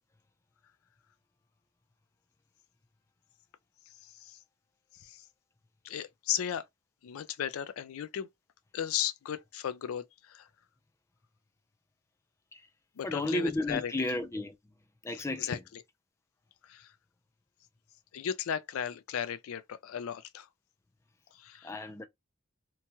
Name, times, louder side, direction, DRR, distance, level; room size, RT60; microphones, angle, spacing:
voice 1, 4.0-4.4 5.0-5.2 5.8-6.6 7.0-8.3 8.7-10.5 13.0-13.9 15.4-15.8 16.6-16.9 18.1-20.5 21.4-21.9, left 9 dB, 90° left, 0.4 m, -36 dB
voice 2, 13.0-14.5 15.0-15.6 21.6-22.1, left 1 dB, 15° left, 0.3 m, -33 dB
3.0 x 2.2 x 2.8 m
head